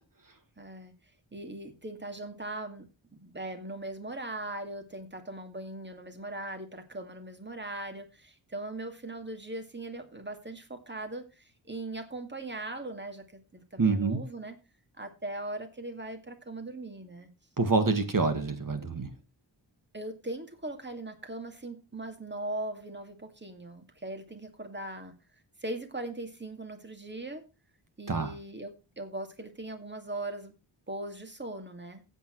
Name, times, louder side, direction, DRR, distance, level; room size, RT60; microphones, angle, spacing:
voice 1, 0.6-0.9 1.3-14.6 15.0-17.3 19.9-25.1 25.6-27.4 28.0-30.5 30.9-32.0, right 2 dB, 25° right, 6 dB, 2.3 m, -39 dB
voice 2, 13.8-14.2 17.6-19.1 28.1-28.3, right 4 dB, 45° right, 7 dB, 1.8 m, -26 dB
15.5 x 8.4 x 3.2 m, 0.30 s
wide cardioid pair, 105°, 45 cm